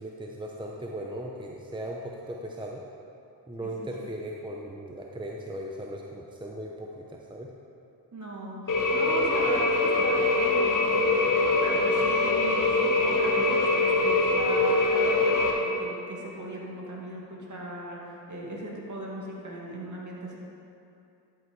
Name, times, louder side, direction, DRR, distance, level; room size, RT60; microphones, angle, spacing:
voice 1, 0.0-2.8 3.5-7.5, right 1 dB, 10° right, -1 dB, 0.8 m, -38 dB
voice 2, 3.6-4.1 8.1-20.3, right 1 dB, 45° right, -3 dB, 2.2 m, -38 dB
sound 1, 8.7-15.5, left 2 dB, 50° left, 1.5 m, -23 dB
11.5 x 5.3 x 4.7 m, 2.7 s
cardioid pair, 50°, 42 cm